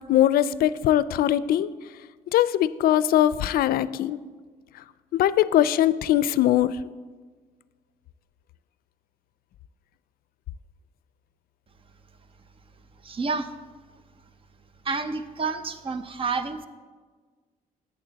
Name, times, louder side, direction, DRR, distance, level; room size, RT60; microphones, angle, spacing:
voice 1, 0.0-1.7 2.3-4.2 5.1-6.8, left 12 dB, 85° left, 16 dB, 0.4 m, -21 dB
voice 2, 13.0-13.5 14.8-16.7, right 4 dB, 35° right, 11 dB, 0.6 m, -29 dB
11.0 x 8.6 x 4.0 m, 1.5 s
cardioid pair, 120°, 15 cm